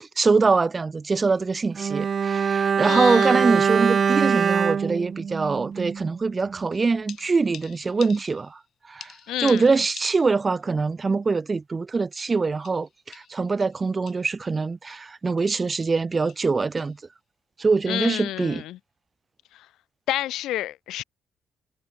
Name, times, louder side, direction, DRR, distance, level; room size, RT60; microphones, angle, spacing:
voice 1, 0.0-8.6 8.9-9.1 9.4-17.0 17.6-18.6, right 4 dB, 30° right, 0.8 m, -23 dB
Bowed string instrument, 1.7-6.2 6.5-6.6, right 6 dB, 50° right, 0.3 m, -23 dB
voice 2, 2.8-3.5 9.3-9.7 17.9-18.8 20.1-21.0, left 14 dB, 85° left, 0.3 m, -29 dB
sound 1, 6.7-8.7 9.0-10.6 10.9-11.0 12.2-14.4 14.9-15.1 15.4-15.5 15.8-16.0 16.3-16.5 16.8-17.0 18.0-18.2, left 10 dB, 65° left, 4.5 m, -47 dB
cardioid pair, 90°, 0 cm